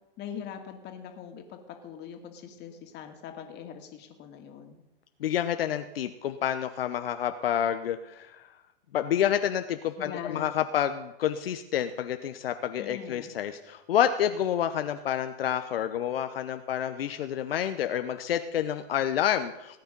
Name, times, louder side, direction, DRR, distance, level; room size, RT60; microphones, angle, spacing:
voice 1, 0.2-4.8 10.0-10.6 12.8-13.3, left 8 dB, 35° left, 5 dB, 2.4 m, -42 dB
voice 2, 5.2-8.4 8.9-19.8, left 10 dB, 75° left, 8 dB, 0.9 m, -28 dB
18.5 x 9.3 x 5.3 m, 0.94 s
hypercardioid pair, 115°, 29 cm